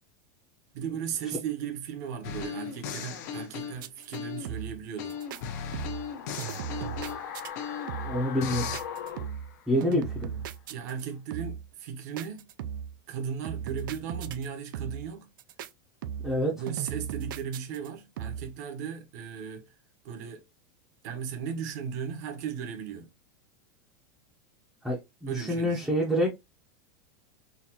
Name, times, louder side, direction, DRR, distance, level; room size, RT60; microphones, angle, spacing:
voice 1, 0.7-5.2 10.7-12.5 13.1-15.3 16.5-19.7 20.0-20.5 21.0-23.1 25.3-25.9, right 7 dB, 55° right, 0.9 m, -36 dB
sound 1, 2.2-4.6 5.0-8.0 8.4-8.8, left 7 dB, 55° left, 0.7 m, -37 dB
sound 2, 3.8-4.2 4.5-4.8 5.1-5.4 5.7-6.1 6.4-7.5 7.9-8.3 8.5-9.5 9.8-11.0 11.3-11.7 12.2-13.0 13.5-14.5 14.7-15.1 15.4-15.7 16.0-16.4 16.7-17.9 18.2-18.5, right 9 dB, 85° right, 0.4 m, -37 dB
sound 3, 5.0-10.2 10.5-10.6, left 8 dB, 80° left, 1.0 m, -41 dB
voice 2, 8.0-8.7 9.7-10.4 16.2-16.5 24.8-26.3, equal, ahead, 0.6 m, -27 dB
4.0 x 2.4 x 2.8 m
supercardioid pair, 170°, 11 cm